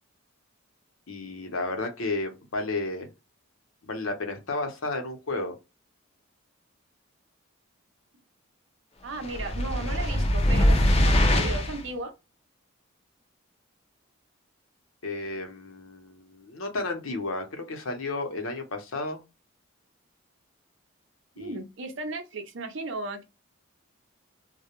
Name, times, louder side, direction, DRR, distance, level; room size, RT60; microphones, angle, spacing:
voice 1, 1.1-3.1 3.8-5.5 15.0-19.2 21.4-21.5, left 2 dB, 75° left, 0.8 m, -32 dB
voice 2, 9.0-12.1 21.4-23.2, right 3 dB, 60° right, 0.6 m, -35 dB
sound 1, 9.2-11.8, left 1 dB, 30° left, 0.4 m, -22 dB
2.2 x 2.1 x 2.9 m
head